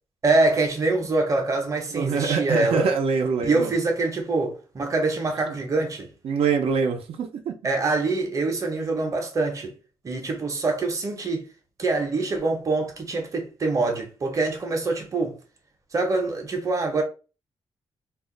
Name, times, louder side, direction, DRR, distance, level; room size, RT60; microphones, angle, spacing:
voice 1, 0.2-2.9 3.4-6.1 7.6-9.7 10.0-11.4 11.8-15.4 15.9-17.0, right 3 dB, 35° right, 0.7 m, -24 dB
voice 2, 1.9-3.7 6.2-7.5, right 5 dB, 80° right, 0.5 m, -24 dB
2.4 x 2.1 x 3.7 m
wide cardioid pair, 145°, 10 cm